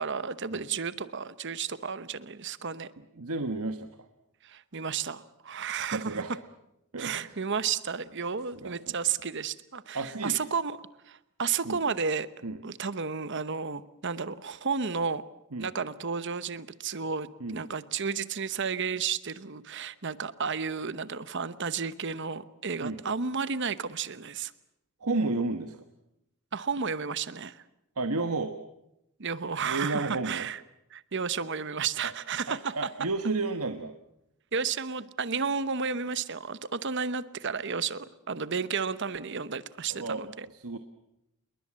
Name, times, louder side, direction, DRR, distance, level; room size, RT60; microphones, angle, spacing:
voice 1, 0.0-2.9 4.4-6.2 7.0-10.8 11.1-12.3 12.6-15.2 15.6-24.5 26.5-27.6 29.2-30.6 30.9-32.7 34.5-40.5, right 6 dB, 55° right, 15 dB, 0.9 m, -32 dB
voice 2, 3.2-3.9 5.8-6.3 6.9-7.4 8.6-8.7 9.9-10.4 11.6-11.8 12.4-12.6 15.5-15.7 17.4-17.6 22.8-23.0 25.0-25.8 28.0-28.5 29.6-30.5 32.0-32.1 32.5-33.9 39.9-40.3 40.5-40.8, right 3 dB, 80° right, 8 dB, 1.3 m, -32 dB
28.0 x 21.5 x 7.5 m, 0.86 s
head